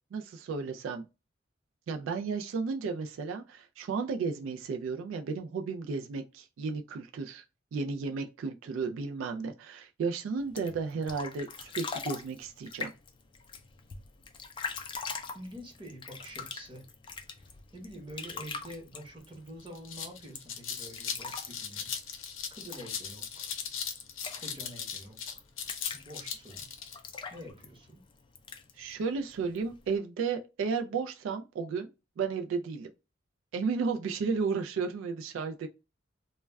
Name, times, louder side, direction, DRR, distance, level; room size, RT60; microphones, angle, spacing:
voice 1, 0.1-1.0 1.9-7.4 7.7-12.9 28.8-31.9 32.2-32.9 33.5-35.7, right 5 dB, 85° right, 0.3 m, -33 dB
sound 1, 10.4-30.0, left 5 dB, 25° left, 0.3 m, -44 dB
voice 2, 15.3-16.9 17.7-21.9 22.5-23.5 24.4-25.4 26.0-26.7 27.3-28.0, equal, 25° right, 0.8 m, -47 dB
sound 2, 19.2-19.3 19.6-27.0, left 7 dB, 80° left, 0.5 m, -38 dB
2.2 x 2.1 x 3.3 m
head